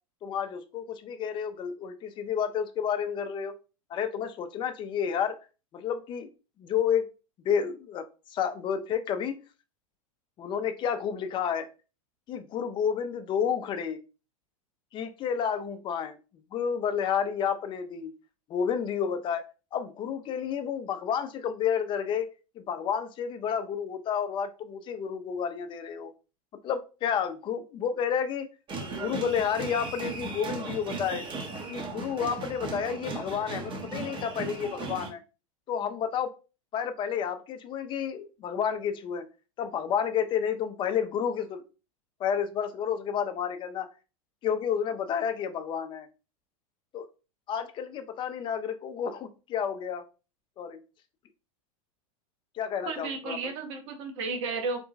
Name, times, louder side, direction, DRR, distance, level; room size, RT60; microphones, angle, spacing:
voice 1, 0.2-3.5 3.9-5.4 5.7-6.3 6.6-7.1 7.4-9.4 10.4-11.7 12.3-14.0 14.9-16.2 16.5-18.1 18.5-19.4 19.7-22.3 22.6-26.1 26.6-28.5 28.9-31.2 31.7-35.2 35.7-36.3 36.7-39.3 39.6-41.6 42.2-43.9 44.4-46.1 46.9-47.1 47.5-50.0 50.6-50.8 52.5-53.4, left 7 dB, 25° left, 9 dB, 0.4 m, -30 dB
sound 1, 28.7-35.1, right 3 dB, 25° right, 0.7 m, -37 dB
voice 2, 52.8-54.8, right 4 dB, 60° right, 4 dB, 1.0 m, -33 dB
2.9 x 2.2 x 2.5 m, 0.32 s
hypercardioid pair, 95°, 18 cm